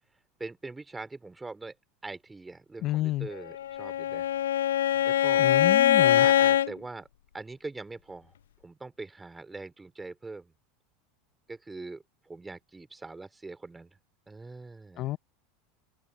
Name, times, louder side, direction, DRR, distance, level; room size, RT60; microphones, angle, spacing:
voice 1, 0.4-1.8 2.0-4.3 5.0-5.5 6.1-7.1 7.3-8.3 8.6-10.5 11.5-14.0 14.3-15.1, right 3 dB, 15° right, 3.9 m, -42 dB
voice 2, 2.8-3.3 5.4-6.3 15.0-15.2, left 15 dB, 50° left, 0.7 m, -30 dB
Bowed string instrument, 3.5-6.7, left 11 dB, 80° left, 0.3 m, -23 dB
open air
hypercardioid pair, 90°, 0 cm